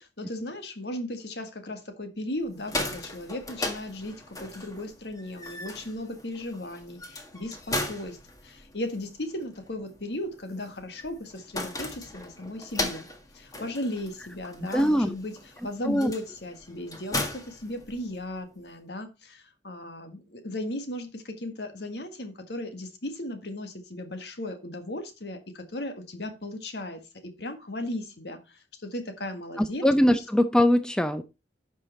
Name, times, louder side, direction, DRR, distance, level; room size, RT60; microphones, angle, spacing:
voice 1, 0.0-8.2 8.4-13.1 13.3-15.4 15.6-29.9 30.1-30.2, left 1 dB, 70° left, 6 dB, 1.8 m, -36 dB
sound 1, 2.4-18.4, left 2 dB, 20° left, 1.6 m, -37 dB
voice 2, 14.7-15.1 15.9-16.1 29.8-31.2, equal, 5° left, 10 dB, 0.5 m, -21 dB
10.5 x 5.6 x 4.1 m, 0.27 s
head